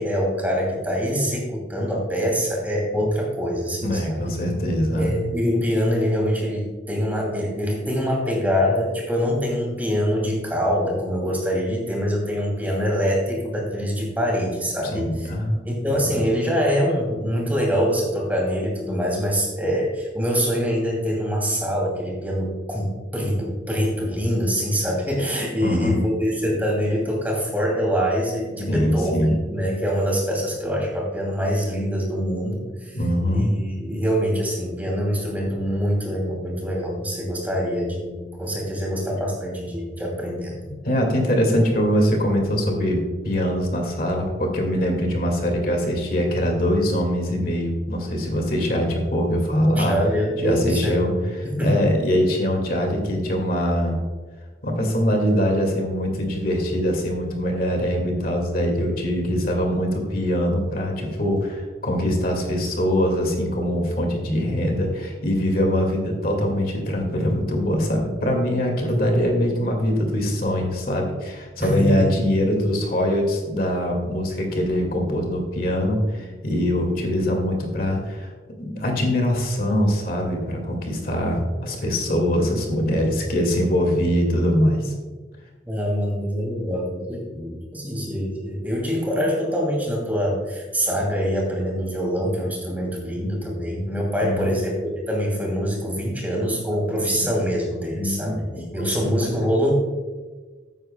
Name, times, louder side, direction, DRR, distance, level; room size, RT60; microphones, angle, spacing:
voice 1, 0.0-4.3 4.9-15.3 15.6-33.0 33.3-40.6 49.7-51.8 68.9-69.0 71.6-72.3 85.6-99.8, equal, 10° right, -1 dB, 2.5 m, -24 dB
voice 2, 3.8-5.3 14.9-15.6 25.6-26.0 28.7-29.4 32.9-33.5 40.8-50.0 50.4-51.1 51.6-54.0 54.6-78.3 78.6-84.9 94.2-94.5 97.0-97.2 98.0-98.1 98.5-99.0, equal, 50° left, 2 dB, 2.0 m, -23 dB
14.5 x 9.8 x 2.2 m, 1.3 s
head